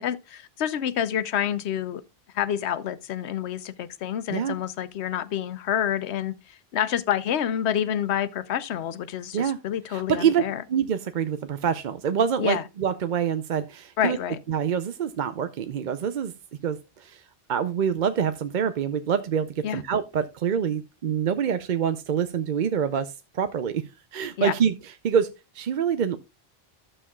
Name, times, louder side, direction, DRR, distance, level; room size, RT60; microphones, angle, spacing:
voice 1, 0.0-2.0 2.3-10.6 12.4-12.6 14.0-14.4 19.6-19.8 24.4-24.5, left 10 dB, 85° left, 0.9 m, -28 dB
voice 2, 9.9-10.4 10.7-14.2 14.5-16.3 16.6-17.2 17.5-23.8 24.1-24.7 25.0-25.3 25.5-26.2, right 8 dB, 55° right, 0.6 m, -26 dB
12.0 x 7.6 x 2.3 m
omnidirectional pair, 1.1 m